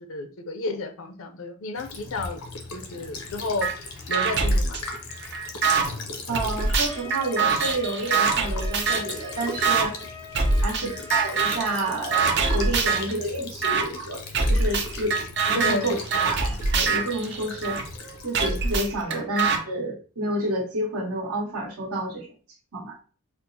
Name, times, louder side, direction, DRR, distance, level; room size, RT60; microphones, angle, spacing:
voice 1, 0.1-2.4 2.7-3.7 4.1-4.8 10.6-10.9 15.5-16.3 19.1-19.2, left 2 dB, 65° left, 7 dB, 0.5 m, -32 dB
Child speech kid speaking / Bird vocalization bird call bird song / Stream, 1.7-18.7, left 3 dB, 90° left, 0.7 m, -38 dB
sound 1, 3.6-3.7 4.1-5.9 6.3-9.2 9.6-9.9 10.3-10.8 11.1-11.7 12.1-13.1 13.6-13.8 14.3-17.8 18.3-19.6, right 4 dB, 50° right, 0.5 m, -24 dB
voice 2, 6.3-10.0 10.6-15.2 15.5-15.9 16.2-17.8 18.2-22.3 22.7-22.9, right 1 dB, 80° right, -2 dB, 1.3 m, -29 dB
Trumpet, 6.9-12.2, left 3 dB, 10° left, 0.4 m, -43 dB
4.3 x 2.0 x 2.6 m, 0.39 s
head